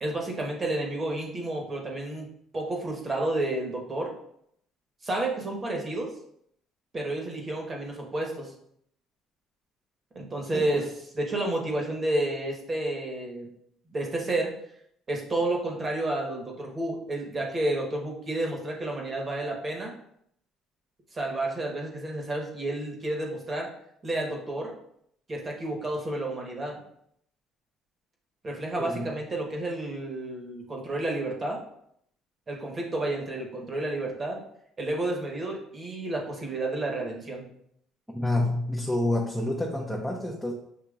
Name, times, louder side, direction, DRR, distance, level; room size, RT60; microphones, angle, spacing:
voice 1, 0.0-2.3 2.5-4.1 5.0-6.1 6.9-8.5 10.1-13.5 13.9-14.5 15.1-19.9 21.1-23.7 24.0-24.7 25.3-26.8 28.4-31.6 32.5-34.4 34.8-37.5, right 2 dB, 25° right, 0 dB, 1.1 m, -30 dB
voice 2, 10.5-10.8 28.8-29.1 38.1-40.5, left 1 dB, ahead, -4 dB, 0.6 m, -28 dB
6.8 x 2.8 x 2.4 m, 0.71 s
cardioid pair, 120°, 0 cm